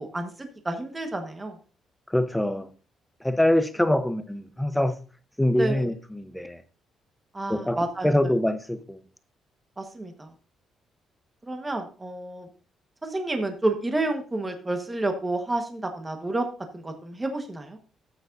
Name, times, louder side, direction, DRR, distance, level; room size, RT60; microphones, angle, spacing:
voice 1, 0.0-1.5 5.6-5.9 7.3-8.1 9.8-10.3 11.4-12.5 13.0-16.4 16.7-17.8, right 2 dB, 15° right, 1.3 m, -30 dB
voice 2, 2.1-2.7 3.2-5.0 5.4-6.6 7.5-9.0, left 1 dB, 5° left, 0.8 m, -24 dB
13.5 x 8.3 x 2.6 m
cardioid pair, 130°, 0 cm